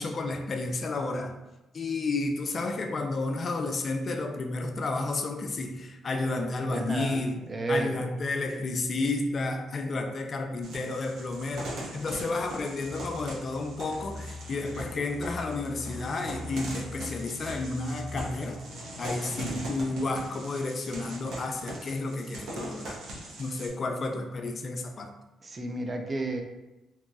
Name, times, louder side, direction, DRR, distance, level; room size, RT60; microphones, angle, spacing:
voice 1, 0.0-1.4 1.7-7.4 7.7-18.6 19.0-23.0 23.4-25.1, left 3 dB, 45° left, 5 dB, 0.3 m, -31 dB
voice 2, 6.7-7.2 7.5-8.1 19.3-19.7 25.4-26.4, right 2 dB, 35° right, 3 dB, 0.4 m, -32 dB
sound 1, 10.6-23.7, right 1 dB, 75° right, 0.6 m, -41 dB
sound 2, 12.4-19.0, left 3 dB, 25° left, 1.0 m, -44 dB
2.9 x 2.6 x 2.2 m, 1.0 s
cardioid pair, 90°, 0 cm